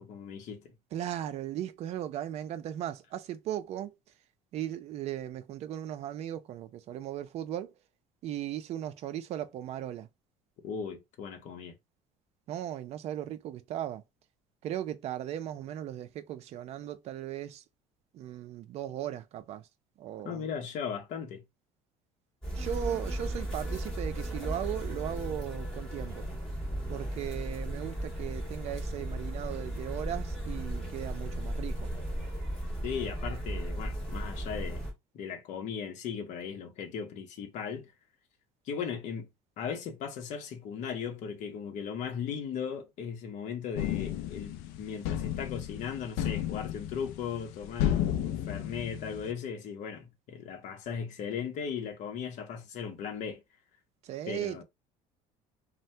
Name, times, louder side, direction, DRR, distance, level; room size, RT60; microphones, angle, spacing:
voice 1, 0.0-0.7 10.6-11.8 20.2-21.4 32.8-34.9 35.1-37.9 38.7-39.3 39.6-53.4 54.3-54.6, left 7 dB, 50° left, 0.8 m, -37 dB
voice 2, 0.9-4.0 4.5-7.7 8.2-10.1 12.5-14.0 14.6-17.6 18.1-19.7 20.0-20.5 22.5-26.2 26.9-31.9 54.0-54.6, right 11 dB, 45° right, 0.4 m, -37 dB
sound 1, 22.4-34.9, right 1 dB, 5° left, 1.5 m, -36 dB
sound 2, 43.7-49.3, left 11 dB, 90° left, 0.4 m, -33 dB
2.7 x 2.1 x 3.2 m
cardioid pair, 155°, 15 cm